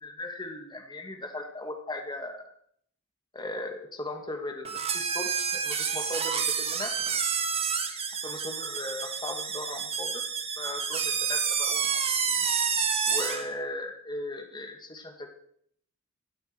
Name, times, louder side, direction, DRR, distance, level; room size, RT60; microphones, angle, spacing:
voice 1, 0.0-2.5 3.3-6.9 8.2-10.2 10.6-12.5 13.1-15.3, left 1 dB, 20° left, 4 dB, 2.1 m, -38 dB
sound 1, 4.6-13.5, right 6 dB, 30° right, 1.5 m, -29 dB
16.5 x 13.5 x 4.7 m, 0.65 s
head